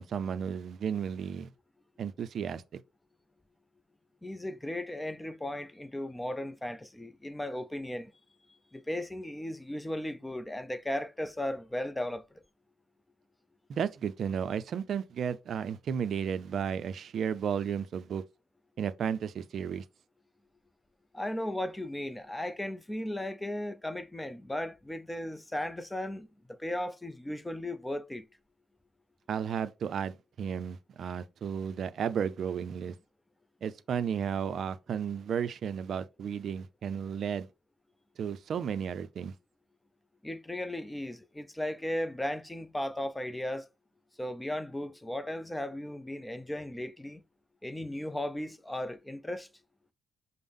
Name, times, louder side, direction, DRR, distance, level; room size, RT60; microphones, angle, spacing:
voice 1, 0.0-1.5 2.0-2.8 13.7-18.2 18.8-19.8 29.3-32.9 33.6-37.5 38.2-39.3, right 7 dB, 60° right, 0.4 m, -33 dB
voice 2, 4.2-8.1 8.7-12.4 21.1-28.2 40.2-43.7 44.2-47.2 47.6-49.5, left 1 dB, 10° left, 0.4 m, -36 dB
5.3 x 2.0 x 3.5 m
cardioid pair, 90°, 0 cm